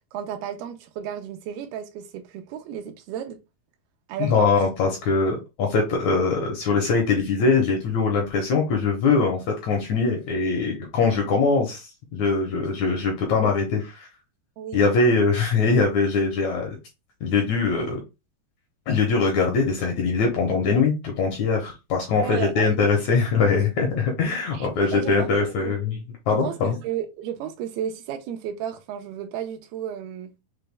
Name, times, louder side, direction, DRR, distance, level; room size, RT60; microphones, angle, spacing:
voice 1, 0.1-3.4 4.1-4.6 14.6-14.9 22.2-22.7 24.5-25.7 26.3-30.3, right 9 dB, 85° right, 2.7 m, -33 dB
voice 2, 4.2-14.1 14.7-16.7 17.2-18.0 18.9-26.0 26.3-26.8, left 4 dB, 70° left, 1.9 m, -22 dB
6.3 x 2.2 x 3.4 m
omnidirectional pair, 4.3 m